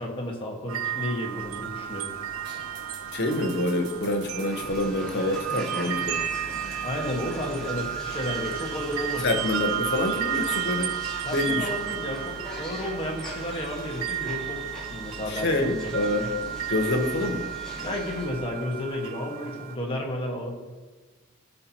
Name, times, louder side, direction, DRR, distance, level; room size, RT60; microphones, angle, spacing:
voice 1, 0.0-2.1 6.8-9.4 11.2-14.6 14.9-15.9 17.7-20.5, left 1 dB, 25° left, -1 dB, 1.5 m, -32 dB
sound 1, 0.7-19.8, right 10 dB, 80° right, 0.5 m, -33 dB
sound 2, 1.4-18.4, right 1 dB, 55° right, 1.4 m, -45 dB
voice 2, 3.1-6.2 9.2-11.0 11.3-11.7 15.3-16.3 16.7-17.5, left 2 dB, 55° left, 5 dB, 0.9 m, -26 dB
sound 3, 4.5-18.3, equal, 5° left, 2.1 m, -43 dB
15.5 x 5.5 x 2.9 m, 1.3 s
head